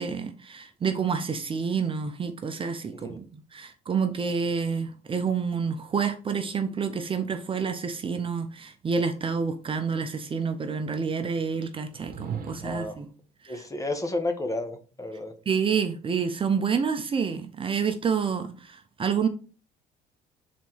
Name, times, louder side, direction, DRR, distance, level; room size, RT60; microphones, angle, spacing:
voice 1, 0.0-13.1 13.4-13.6 15.5-19.3, right 6 dB, 30° right, 0.8 m, -28 dB
sound 1, 11.9-13.0, right 7 dB, 60° right, 1.3 m, -38 dB
voice 2, 12.6-13.0 13.5-15.3, left 2 dB, 20° left, 1.2 m, -31 dB
6.0 x 4.1 x 4.6 m
cardioid pair, 110°, 17 cm